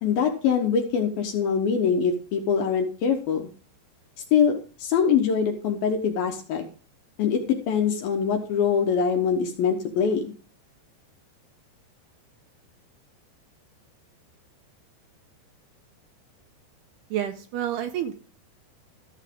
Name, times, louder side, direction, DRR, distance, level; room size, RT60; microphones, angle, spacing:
voice 1, 0.0-3.5 4.3-6.6 7.2-10.3, left 6 dB, 70° left, 3 dB, 2.4 m, -23 dB
voice 2, 17.1-18.1, right 11 dB, 80° right, 7 dB, 2.5 m, -29 dB
14.5 x 8.0 x 3.6 m, 0.39 s
omnidirectional pair, 5.2 m